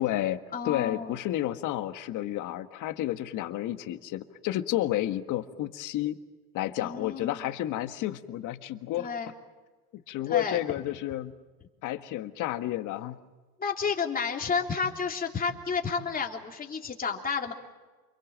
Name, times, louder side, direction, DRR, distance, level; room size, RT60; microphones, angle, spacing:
voice 1, 0.0-6.2 6.5-9.1 10.1-11.3 11.8-13.2, left 14 dB, 40° left, 9 dB, 1.7 m, -31 dB
voice 2, 0.5-1.1 6.8-7.5 9.0-9.3 10.3-10.6 13.6-17.5, left 5 dB, 20° left, 1 dB, 3.4 m, -31 dB
29.0 x 22.5 x 7.6 m, 1.3 s
supercardioid pair, 115°, 47 cm